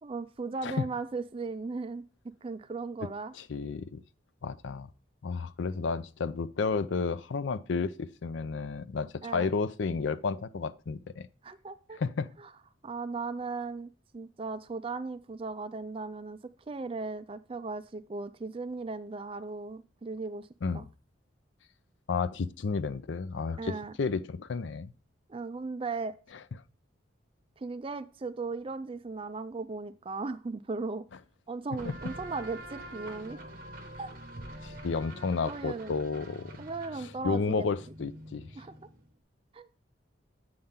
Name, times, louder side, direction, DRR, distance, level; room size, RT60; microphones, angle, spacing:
voice 1, 0.0-2.0 2.4-3.3 9.2-9.5 11.4-12.0 12.4-12.5 12.8-16.4 16.7-20.5 20.7-20.9 23.6-23.9 25.3-26.1 27.6-31.0 31.5-33.4 34.0-34.1 35.4-35.9 36.6-37.7 38.6-38.8 39.5-39.7, right 3 dB, 30° right, 0.4 m, -37 dB
voice 2, 3.4-4.0 4.4-4.9 5.2-11.3 11.9-12.3 20.6-20.8 22.1-24.9 31.8-31.9 34.6-36.6 37.2-38.5, left 4 dB, 75° left, 0.4 m, -32 dB
sound 1, 31.8-39.1, right 1 dB, 45° right, 1.1 m, -46 dB
7.8 x 5.7 x 3.6 m
head